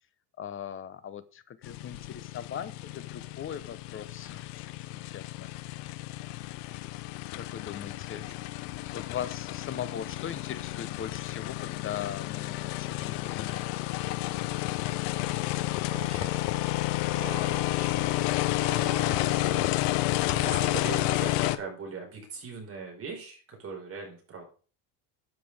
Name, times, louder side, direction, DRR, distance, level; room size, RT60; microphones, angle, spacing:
voice 1, 0.4-4.7 5.0-5.5 7.4-8.3 8.9-13.9 19.1-19.9 20.5-20.8, left 9 dB, 25° left, 14 dB, 0.9 m, -40 dB
sound 1, 1.6-21.6, left 17 dB, 85° left, 1.1 m, -31 dB
voice 2, 15.2-16.4 17.1-18.2 18.6-19.7 20.3-24.4, right 4 dB, 30° right, 1 dB, 5.1 m, -41 dB
12.5 x 8.5 x 3.6 m, 0.38 s
cardioid pair, 150°, 47 cm